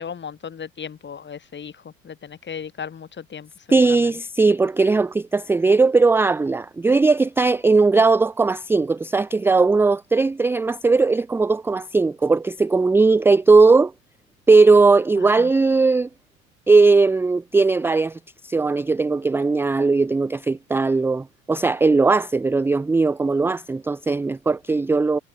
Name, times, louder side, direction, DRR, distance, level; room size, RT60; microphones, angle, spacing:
voice 1, 0.0-4.0 15.2-15.5, left 7 dB, 25° left, 2.1 m, -36 dB
voice 2, 3.7-13.9 14.5-16.1 16.7-25.2, right 3 dB, 5° right, 0.4 m, -18 dB
figure-of-eight pair, 65°, 40 cm